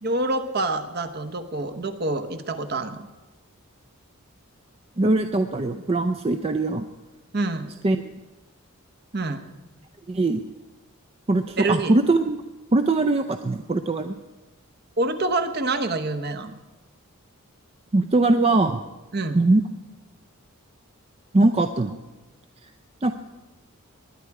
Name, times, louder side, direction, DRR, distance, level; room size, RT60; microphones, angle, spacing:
voice 1, 0.0-3.1 7.3-7.7 9.1-9.4 11.6-11.9 15.0-16.5 19.1-19.4, right 2 dB, 45° right, 8 dB, 1.0 m, -26 dB
voice 2, 5.0-6.9 7.8-8.0 10.1-10.4 11.3-12.4 12.7-14.2 17.9-18.8 19.3-19.6 21.3-22.0 23.0-23.1, right 2 dB, 25° right, 8 dB, 0.4 m, -21 dB
20.0 x 9.8 x 4.8 m, 1.1 s
head